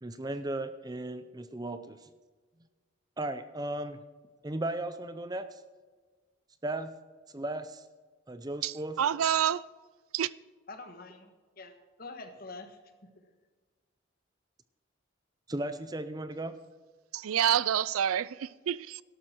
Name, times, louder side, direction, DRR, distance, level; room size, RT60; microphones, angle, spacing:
voice 1, 0.0-2.1 3.2-4.0 4.4-5.6 6.6-6.9 7.3-7.8 8.3-9.0 15.5-16.6, right 1 dB, 20° right, 0.6 m, -36 dB
voice 2, 8.6-9.6 10.1-10.3 17.1-19.0, right 9 dB, 90° right, 0.4 m, -28 dB
voice 3, 10.7-12.8, left 3 dB, 45° left, 1.4 m, -46 dB
12.5 x 12.0 x 4.5 m
head